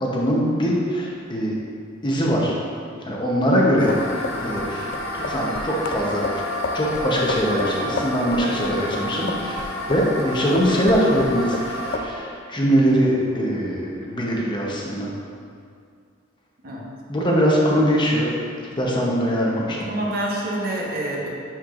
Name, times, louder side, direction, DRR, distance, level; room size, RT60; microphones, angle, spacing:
voice 1, 0.0-1.6 2.0-2.5 3.0-3.9 4.4-4.8 5.2-6.2 6.7-15.1 17.1-18.3 18.8-19.9, equal, 25° left, -3 dB, 0.8 m, -22 dB
sound 1, 3.7-10.3 10.6-11.7 11.9-12.1, left 3 dB, 50° left, 0.4 m, -31 dB
sound 2, 3.8-12.0, left 1 dB, 65° left, 0.8 m, -30 dB
voice 2, 19.6-21.3, right 1 dB, 50° right, -2 dB, 1.0 m, -27 dB
10.5 x 4.4 x 2.5 m, 2.3 s
head